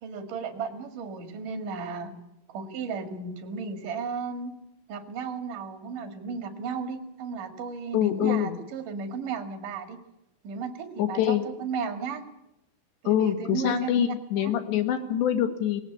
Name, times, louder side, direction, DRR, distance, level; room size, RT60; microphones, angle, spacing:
voice 1, 0.0-2.1 2.5-4.6 4.9-10.0 10.4-12.2 13.0-14.5, right 5 dB, 50° right, 6 dB, 3.1 m, -34 dB
voice 2, 7.9-8.6 11.0-11.5 13.1-15.8, left 10 dB, 70° left, 8 dB, 3.7 m, -25 dB
20.0 x 18.0 x 8.4 m, 0.87 s
omnidirectional pair, 5.5 m